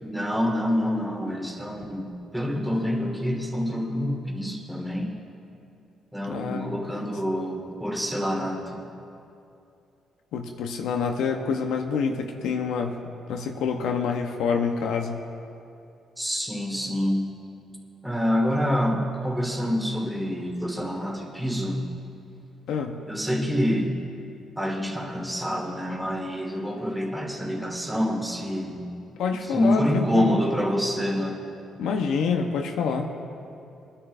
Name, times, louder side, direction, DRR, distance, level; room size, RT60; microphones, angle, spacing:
voice 1, 0.0-5.1 6.1-8.8 16.2-17.3 18.0-21.8 23.1-23.9 24.6-28.9 29.5-31.4, equal, 5° right, -2 dB, 1.9 m, -27 dB
voice 2, 6.3-6.7 10.3-13.0 13.3-15.2 22.7-23.0 29.2-30.4 31.8-33.1, left 5 dB, 85° left, 3 dB, 0.8 m, -27 dB
25.5 x 10.0 x 2.6 m, 2.6 s
cardioid pair, 90°, 0 cm